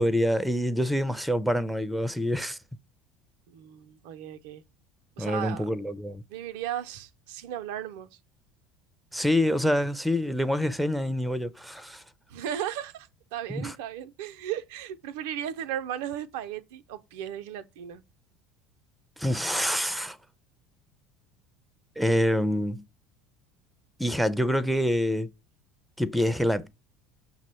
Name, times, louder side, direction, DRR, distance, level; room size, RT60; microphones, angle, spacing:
voice 1, 0.0-2.6 5.2-6.2 9.1-12.0 13.5-13.7 19.2-20.2 22.0-22.8 24.0-25.3 26.0-26.7, equal, ahead, 0.4 m, -26 dB
voice 2, 3.5-4.6 5.2-5.7 6.3-8.1 12.3-18.0, right 10 dB, 70° right, 0.3 m, -36 dB
5.9 x 2.0 x 4.1 m
hypercardioid pair, 75°, 0 cm